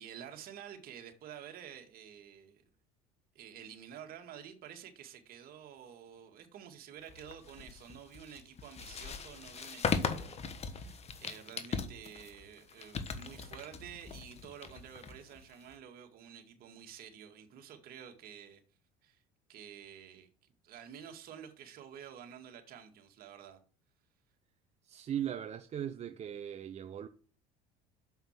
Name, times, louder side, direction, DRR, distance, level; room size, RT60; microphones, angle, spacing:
voice 1, 0.0-2.6 3.4-18.6 19.0-19.2 19.5-20.3 20.6-23.6, right 9 dB, 55° right, 2.1 m, -50 dB
sound 1, 7.1-15.7, left 5 dB, 35° left, 1.3 m, -39 dB
voice 2, 24.8-27.1, right 10 dB, 40° right, 0.7 m, -38 dB
7.2 x 5.7 x 7.4 m
hypercardioid pair, 80°, 18 cm